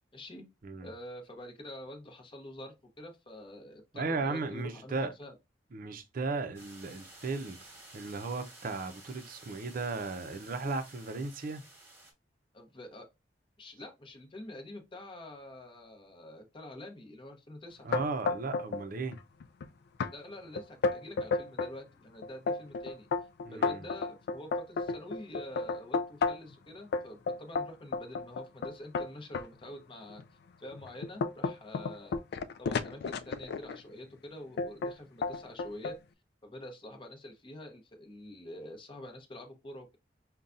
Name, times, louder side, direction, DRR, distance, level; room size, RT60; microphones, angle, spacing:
voice 1, 0.1-0.4 0.8-5.3 12.5-13.1 13.6-17.9 20.1-23.1 23.5-30.2 30.6-32.2 32.6-36.0 36.4-40.0, left 1 dB, 30° left, 0.8 m, -47 dB
voice 2, 3.9-5.1 5.7-7.6 7.9-11.6 17.8-19.2 23.4-23.9, right 3 dB, 50° right, 0.5 m, -36 dB
sound 1, 6.5-12.1, right 2 dB, 15° right, 1.3 m, -53 dB
sound 2, 17.9-18.8 19.1-19.6 20.0-20.1 20.6-21.7 22.2-26.5 26.9-29.5 30.1-30.2 30.7-33.8 34.6-34.9 35.2-36.0, left 4 dB, 65° left, 0.3 m, -32 dB
5.4 x 2.2 x 2.5 m
head